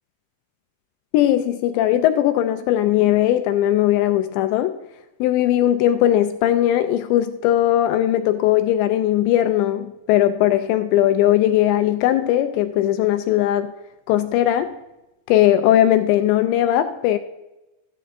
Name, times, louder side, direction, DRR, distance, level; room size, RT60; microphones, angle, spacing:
voice 1, 1.1-4.8 5.2-13.7 14.1-14.8 15.3-17.2, left 12 dB, 80° left, 2.7 m, -19 dB
13.5 x 13.5 x 2.5 m
omnidirectional pair, 5.4 m